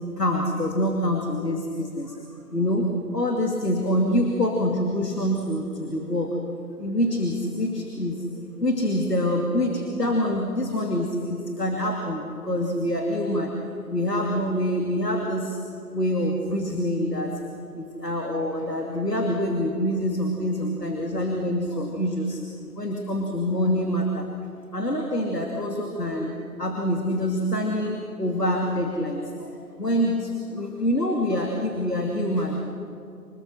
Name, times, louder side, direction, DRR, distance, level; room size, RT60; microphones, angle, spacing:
voice 1, 0.2-2.2 2.5-6.4 6.8-8.3 8.6-13.5 13.9-15.6 15.9-17.4 17.7-22.4 22.7-24.3 24.7-26.3 26.6-32.6, equal, 85° left, 1 dB, 2.7 m, -26 dB
27.0 x 19.5 x 6.3 m, 2.6 s
figure-of-eight pair, 150°, 46 cm